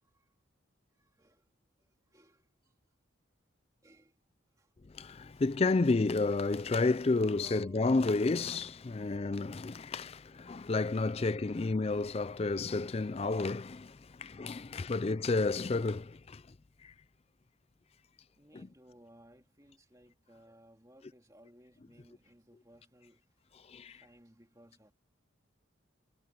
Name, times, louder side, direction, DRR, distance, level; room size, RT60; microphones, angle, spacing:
voice 1, 0.0-0.3 1.0-1.5 1.8-2.7 3.8-4.2 4.6-4.7 5.3-5.5 7.4-8.0 9.0-9.3 9.9-10.0 11.1-11.8 14.1-14.4 14.9-15.1 18.4-24.9, right 1 dB, 15° right, 2.4 m, -62 dB
voice 2, 4.9-16.4 16.8-16.9 23.7-24.0, left 3 dB, 30° left, 0.4 m, -31 dB
head